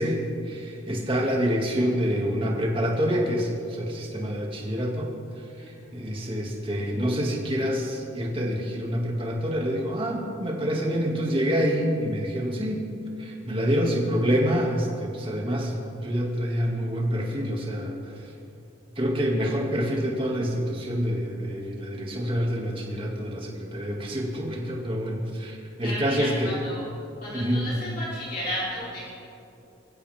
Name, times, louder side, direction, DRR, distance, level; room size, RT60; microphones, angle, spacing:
voice 1, 0.0-5.1 5.6-12.8 13.2-17.9 19.0-26.5 27.3-27.7, equal, 25° right, -1 dB, 2.3 m, -27 dB
voice 2, 5.6-5.9 25.8-26.8 27.2-29.1, equal, 45° left, -8 dB, 4.1 m, -34 dB
23.5 x 15.0 x 3.7 m, 2.8 s
head